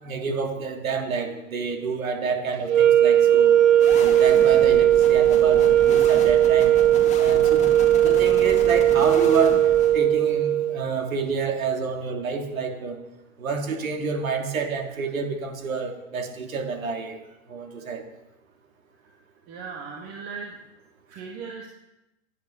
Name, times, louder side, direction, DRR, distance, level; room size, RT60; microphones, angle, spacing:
voice 1, 0.0-3.5 3.9-6.7 7.2-7.7 8.0-9.7 9.9-13.0 13.4-17.2 17.5-18.0, right 5 dB, 80° right, 3 dB, 3.0 m, -28 dB
sound 1, 2.6-10.8, right 11 dB, 60° right, 1.0 m, -18 dB
sound 2, 3.8-10.4, left 4 dB, 15° left, 2.2 m, -36 dB
voice 2, 3.9-4.2 19.5-20.5 21.1-21.7, right 5 dB, 35° right, 0 dB, 2.1 m, -38 dB
16.5 x 10.5 x 5.7 m, 0.96 s
hypercardioid pair, 130°, 40 cm